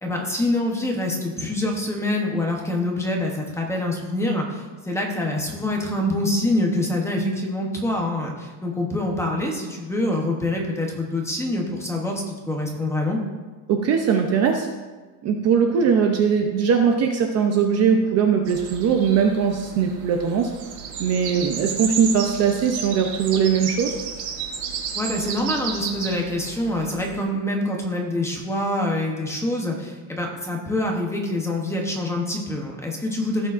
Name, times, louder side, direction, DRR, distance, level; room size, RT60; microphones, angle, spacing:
voice 1, 0.0-13.2 25.0-33.5, left 1 dB, 5° left, 0 dB, 0.8 m, -25 dB
voice 2, 13.7-14.7 15.2-20.5 21.0-23.9, right 6 dB, 35° right, 3 dB, 0.6 m, -20 dB
sound 1, 18.5-27.2, right 7 dB, 50° right, 1.2 m, -33 dB
15.5 x 6.9 x 2.5 m, 1.3 s
cardioid pair, 170°, 49 cm